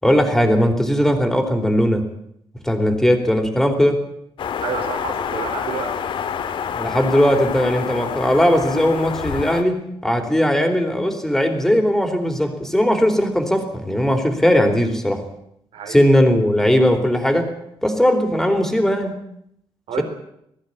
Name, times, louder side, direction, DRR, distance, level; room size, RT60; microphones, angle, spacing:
voice 1, 0.0-2.1 2.6-4.0 6.7-15.2 15.9-17.5 17.8-19.1, equal, 5° left, 5 dB, 3.9 m, -18 dB
sound 1, 4.4-9.6, left 7 dB, 60° left, 1.8 m, -27 dB
voice 2, 4.6-6.0 15.7-16.0 19.9-20.0, right 6 dB, 80° right, 4 dB, 4.4 m, -29 dB
19.5 x 15.0 x 9.9 m, 0.76 s
cardioid pair, 125°, 10 cm